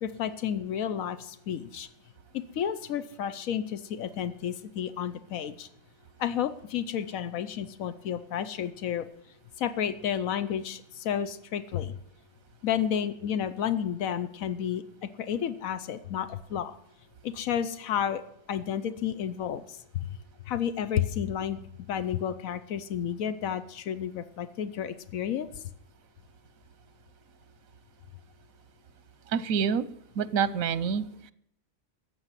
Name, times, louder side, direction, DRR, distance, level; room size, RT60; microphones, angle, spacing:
voice 1, 0.0-1.9 2.5-5.7 6.2-9.1 9.6-12.0 12.6-16.8 17.2-18.2 18.5-20.1 20.5-25.5, left 9 dB, 90° left, 12 dB, 1.2 m, -31 dB
voice 2, 29.3-29.9 30.2-31.3, right 7 dB, 85° right, 16 dB, 1.2 m, -27 dB
14.0 x 8.0 x 9.7 m, 0.75 s
omnidirectional pair, 1.4 m